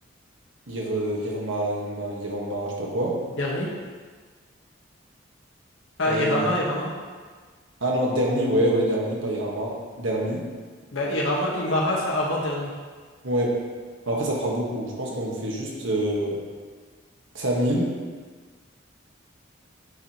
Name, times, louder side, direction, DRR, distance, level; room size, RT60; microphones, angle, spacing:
voice 1, 0.7-3.2 6.0-6.4 7.8-10.5 13.2-13.6 14.1-16.4 17.3-17.9, right 1 dB, 75° right, -2 dB, 1.4 m, -26 dB
voice 2, 3.4-3.7 6.0-6.9 10.9-12.7, left 1 dB, 80° left, -2 dB, 1.3 m, -25 dB
9.5 x 4.7 x 2.9 m, 1.5 s
head